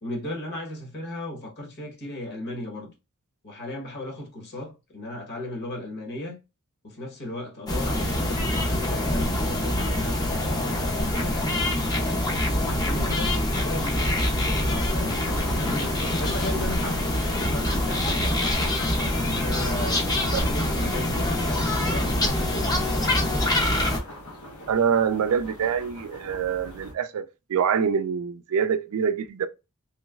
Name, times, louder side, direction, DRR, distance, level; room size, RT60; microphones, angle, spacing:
voice 1, 0.0-2.9 3.4-6.4 6.8-12.1 12.6-18.4 19.2-23.4, left 1 dB, 50° left, 1.1 m, -36 dB
sound 1, 7.7-24.0, left 1 dB, 20° left, 0.6 m, -25 dB
sound 2, 15.0-26.9, left 1 dB, 90° left, 1.0 m, -39 dB
voice 2, 24.7-27.2 27.5-29.5, right 7 dB, 70° right, 0.4 m, -25 dB
3.1 x 2.9 x 2.3 m
head